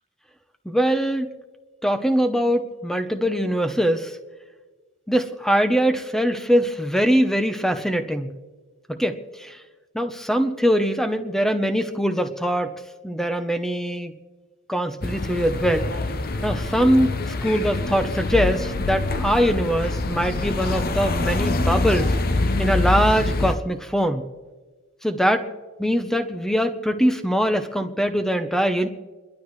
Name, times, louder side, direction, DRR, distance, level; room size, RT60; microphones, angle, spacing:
voice 1, 0.6-1.3 1.8-4.2 5.1-8.3 8.9-9.6 9.9-12.7 13.0-14.1 14.7-15.9 16.4-22.1 22.6-24.2 25.0-25.5 25.8-28.9, equal, ahead, 8 dB, 0.8 m, -22 dB
sound 1, 15.0-23.5, left 2 dB, 45° left, 0.7 m, -25 dB
29.5 x 12.0 x 3.2 m, 1.3 s
head